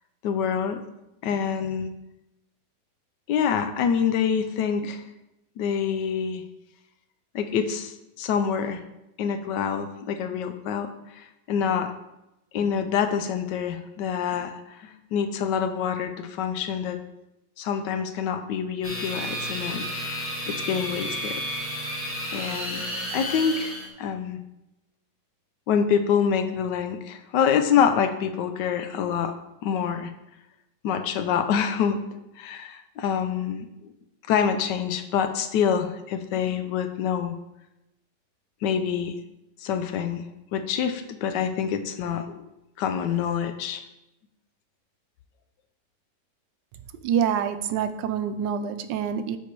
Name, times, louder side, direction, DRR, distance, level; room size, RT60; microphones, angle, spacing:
voice 1, 0.2-0.8 1.2-1.9 3.3-5.0 5.6-6.4 7.3-8.8 9.2-10.9 11.1-11.9 12.5-14.5 14.8-17.0 17.6-21.4 22.3-22.8 23.1-24.4 25.7-29.3 29.6-30.1 30.8-32.0 32.4-33.9 34.3-37.4 38.6-39.1 39.6-42.4 42.8-43.8, left 7 dB, 80° left, 8 dB, 1.2 m, -26 dB
sound 1, 18.8-23.9, equal, 10° left, 1.0 m, -32 dB
voice 2, 47.0-49.4, right 8 dB, 85° right, 11 dB, 1.3 m, -26 dB
6.8 x 4.6 x 4.5 m, 0.92 s
omnidirectional pair, 1.9 m